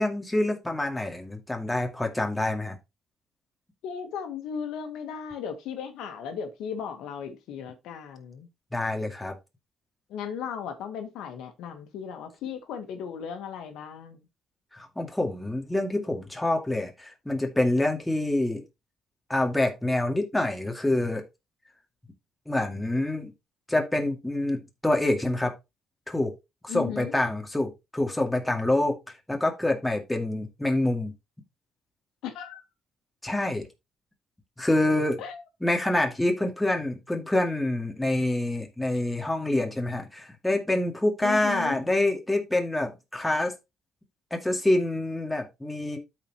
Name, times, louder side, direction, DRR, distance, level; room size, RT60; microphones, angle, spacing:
voice 1, 0.0-2.8 8.7-9.4 14.7-18.6 19.3-21.2 22.5-23.3 23.7-25.5 26.1-26.3 26.6-31.1 33.2-33.7 34.6-35.2 35.6-43.5 44.3-46.0, left 1 dB, 10° left, 2.1 m, -26 dB
voice 2, 3.8-8.5 10.1-14.2 26.7-27.2 32.2-32.6 35.2-35.4 41.2-41.8, left 7 dB, 90° left, 1.2 m, -36 dB
13.0 x 4.4 x 2.9 m
cardioid pair, 90°, 0 cm